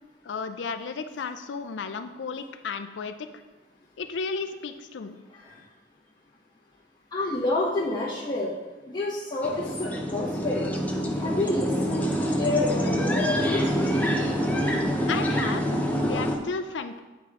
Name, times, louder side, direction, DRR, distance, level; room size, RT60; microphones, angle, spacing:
voice 1, 0.2-3.1 4.0-5.2 15.1-15.6 16.0-17.0, left 5 dB, 70° left, 8 dB, 0.4 m, -33 dB
voice 2, 5.3-5.6 7.1-8.6 8.9-10.7 11.1-13.7, left 2 dB, 25° left, -8 dB, 1.0 m, -29 dB
sound 1, 9.4-16.4, equal, 10° left, 0.7 m, -26 dB
9.6 x 4.6 x 3.6 m, 1.2 s
head